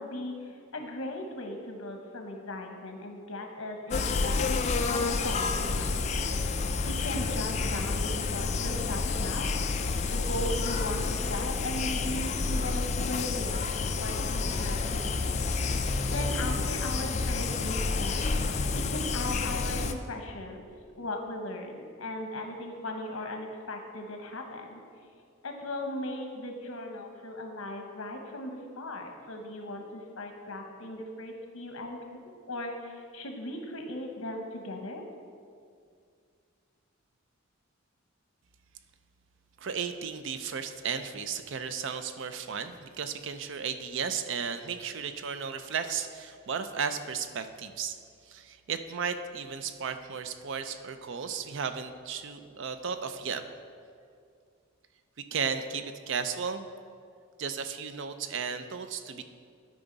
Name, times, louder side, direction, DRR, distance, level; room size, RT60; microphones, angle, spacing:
voice 1, 0.0-4.4 4.9-6.3 6.8-9.5 10.1-13.6 13.9-20.6 21.0-24.8 25.4-32.0 32.5-35.0, left 1 dB, 75° left, 3 dB, 1.0 m, -38 dB
sound 1, 3.9-19.9, left 4 dB, 35° left, 0.3 m, -29 dB
voice 2, 39.6-48.0 48.3-53.4 55.3-56.7 57.4-59.2, right 6 dB, 60° right, 9 dB, 0.5 m, -34 dB
12.5 x 5.0 x 3.9 m, 2.3 s
head